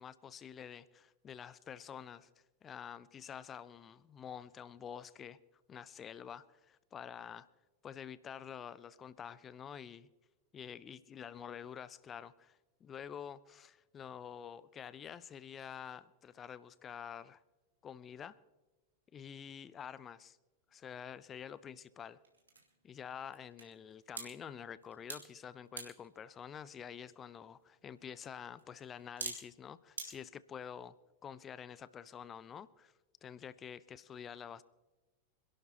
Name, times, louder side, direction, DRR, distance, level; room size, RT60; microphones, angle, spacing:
voice 1, 0.0-2.3 2.6-5.4 5.7-7.5 7.8-10.1 10.5-17.4 17.8-18.4 19.1-20.4 20.7-22.2 22.8-30.9 31.2-32.9 33.2-34.6, left 8 dB, 25° left, 18 dB, 0.5 m, -48 dB
sound 1, 20.7-30.1, right 4 dB, 75° right, 2.4 m, -51 dB
26.0 x 11.5 x 2.9 m, 1.1 s
figure-of-eight pair, 90°, 0 cm